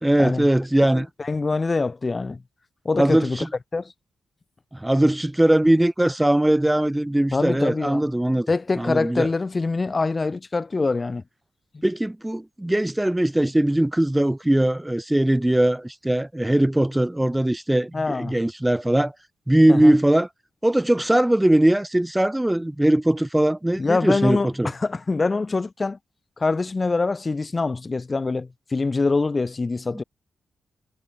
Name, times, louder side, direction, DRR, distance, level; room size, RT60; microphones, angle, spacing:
voice 1, 0.0-1.1 3.0-3.5 4.7-8.5 8.8-9.3 11.8-19.1 19.5-20.3 20.6-24.7, right 1 dB, 10° right, 4.6 m, -20 dB
voice 2, 0.9-2.4 2.8-3.5 3.7-3.9 7.3-8.0 8.5-11.2 11.7-11.8 17.9-18.4 19.7-19.9 23.8-26.0 26.4-30.0, left 3 dB, 35° left, 3.0 m, -24 dB
cardioid pair, 65°, 0 cm